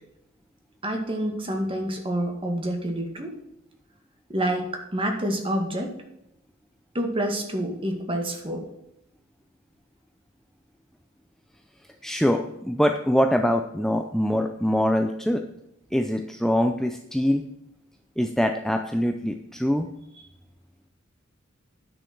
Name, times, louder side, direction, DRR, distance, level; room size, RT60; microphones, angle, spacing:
voice 1, 0.8-3.3 4.3-5.9 6.9-8.6, right 1 dB, 25° right, 3 dB, 1.9 m, -28 dB
voice 2, 12.0-15.4 15.9-17.4 18.2-19.9, equal, ahead, 4 dB, 0.5 m, -23 dB
9.7 x 6.3 x 6.0 m, 0.84 s
head